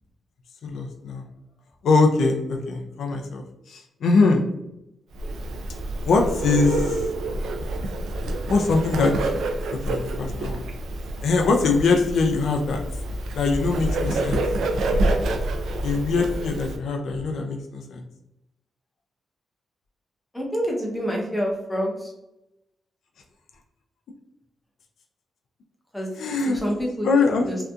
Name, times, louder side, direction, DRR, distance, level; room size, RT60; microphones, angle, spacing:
voice 1, 0.6-1.2 1.8-4.4 6.0-7.0 8.5-9.1 9.8-10.6 11.2-12.8 13.4-14.4 15.8-18.0 26.1-26.6 27.0-27.6, left 3 dB, 80° left, 3 dB, 0.3 m, -22 dB
Bird, 5.1-16.8, right 2 dB, 85° right, 0.3 m, -27 dB
voice 2, 20.3-22.1 25.9-26.1 26.5-27.1 27.4-27.6, equal, 5° left, -2 dB, 0.6 m, -27 dB
2.6 x 2.4 x 2.2 m, 0.89 s
wide cardioid pair, 135°, 0 cm